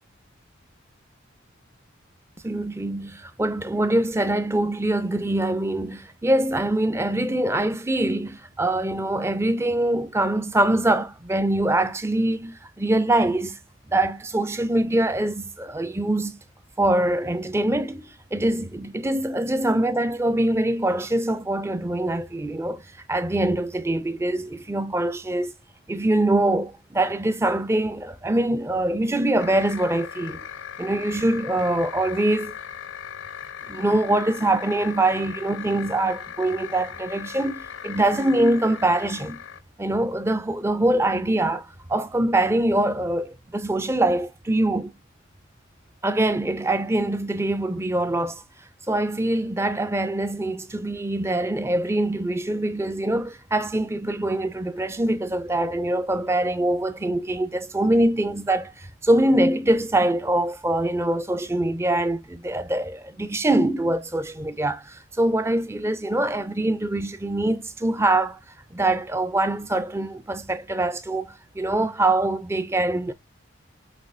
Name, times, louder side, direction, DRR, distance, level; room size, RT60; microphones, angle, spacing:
voice 1, 2.4-13.6 13.9-16.4 16.8-22.8 23.1-25.5 25.9-30.5 30.8-32.5 33.7-39.4 39.8-44.9 46.0-48.4 48.9-68.4 68.7-73.1, right 1 dB, 15° right, 0.4 m, -24 dB
sound 1, 29.4-39.6, left 8 dB, 65° left, 0.6 m, -38 dB
6.1 x 3.0 x 2.4 m
head